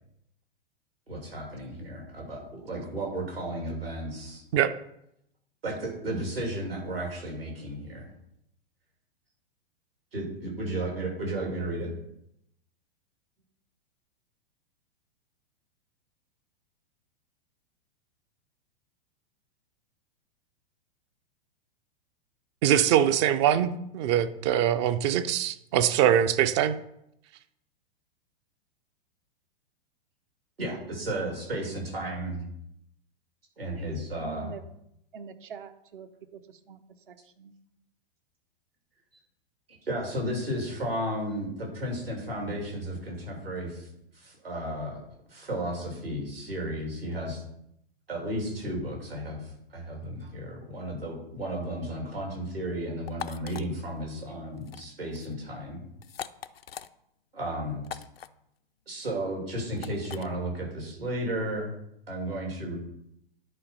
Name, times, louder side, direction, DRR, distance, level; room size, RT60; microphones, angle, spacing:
voice 1, 1.1-4.4 5.6-8.1 10.1-12.0 30.6-32.4 33.6-34.5 39.8-43.9 44.1-45.0 45.3-47.4 48.1-55.8 57.3-57.8 58.9-61.7 62.1-62.8, right 1 dB, 80° right, 3.0 m, -33 dB
voice 2, 22.6-26.8, right 10 dB, 30° right, 0.5 m, -23 dB
voice 3, 34.1-34.6 35.1-37.5, right 6 dB, 60° right, 0.9 m, -44 dB
sound 1, 53.1-53.6 54.6-54.8 55.1-55.3 56.0-56.9 57.8-58.3 59.8-60.3, left 8 dB, 80° left, 0.5 m, -40 dB
10.0 x 4.1 x 5.5 m
figure-of-eight pair, 100°, 30 cm